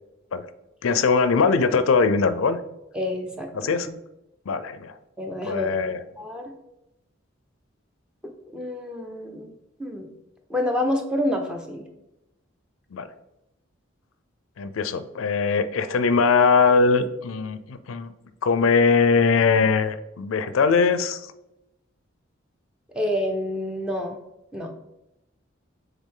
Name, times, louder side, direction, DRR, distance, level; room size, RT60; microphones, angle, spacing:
voice 1, 0.8-2.6 3.5-3.9 4.5-4.9 5.4-6.0 12.9-13.1 14.6-18.1 18.4-21.2, left 4 dB, 85° left, 12 dB, 0.4 m, -21 dB
voice 2, 2.9-3.7 5.2-5.7 6.2-6.5 8.5-9.5 9.8-10.1 10.5-11.8 22.9-24.2 24.5-24.7, left 1 dB, 5° right, 2 dB, 0.7 m, -28 dB
7.2 x 3.5 x 3.8 m, 0.91 s
head